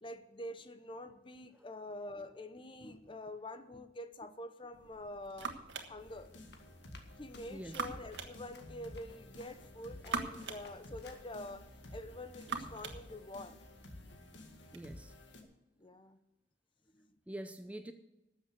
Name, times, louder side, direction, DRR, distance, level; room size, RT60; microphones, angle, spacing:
voice 1, 0.0-5.6 5.9-6.3 7.2-13.6 15.8-16.2 16.9-17.1, left 1 dB, 30° left, 11 dB, 0.8 m, -46 dB
sound 1, 4.7-14.9, right 4 dB, 80° right, 1.5 m, -46 dB
sound 2, 6.0-15.4, left 1 dB, 85° left, 2.1 m, -53 dB
Run, 6.1-9.8 10.0-10.3 10.6-11.5, left 4 dB, 60° left, 1.7 m, -60 dB
voice 2, 7.5-7.8 14.7-15.1 17.3-17.9, right 1 dB, 10° right, 8 dB, 0.5 m, -45 dB
12.5 x 7.5 x 8.1 m, 0.95 s
head